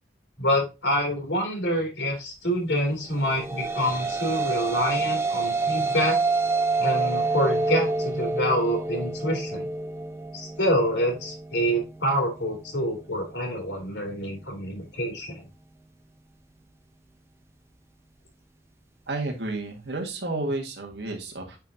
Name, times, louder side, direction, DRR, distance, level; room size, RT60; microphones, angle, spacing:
voice 1, 0.4-6.2 6.8-9.7 10.3-15.4, equal, 90° left, 1 dB, 2.8 m, -27 dB
sound 1, 3.2-11.7, right 3 dB, 15° right, 0.7 m, -27 dB
voice 2, 19.1-21.6, right 2 dB, 75° right, 2 dB, 1.8 m, -31 dB
8.9 x 4.0 x 2.7 m, 0.26 s
head